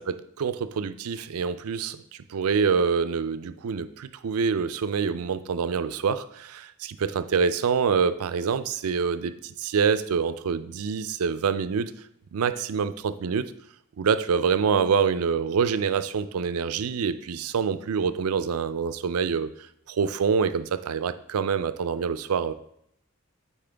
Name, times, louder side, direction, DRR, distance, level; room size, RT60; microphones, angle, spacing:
voice 1, 0.4-2.0 2.3-11.9 12.3-13.5 14.0-19.5 19.9-22.5, right 6 dB, 85° right, 12 dB, 0.4 m, -26 dB
8.9 x 4.4 x 3.4 m, 0.71 s
head